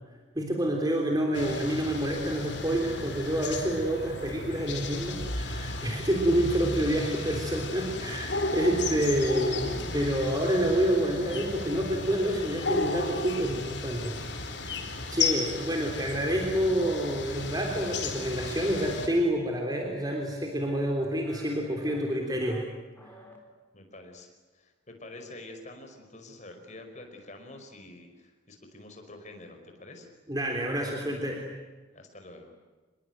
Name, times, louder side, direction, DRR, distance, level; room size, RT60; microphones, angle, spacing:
voice 1, 0.4-14.2 14.6-22.6 30.3-31.4, right 1 dB, 20° right, 1 dB, 3.4 m, -28 dB
sound 1, 1.3-19.1, left 3 dB, 70° left, 4.5 m, -34 dB
sound 2, 20.1-20.2 20.7-20.9 21.3-21.6 21.9-22.6 23.0-23.4, left 1 dB, 10° left, 4.1 m, -51 dB
voice 2, 23.7-30.1 31.9-32.5, left 2 dB, 40° left, 5 dB, 5.2 m, -47 dB
27.5 x 21.5 x 9.3 m, 1.3 s
head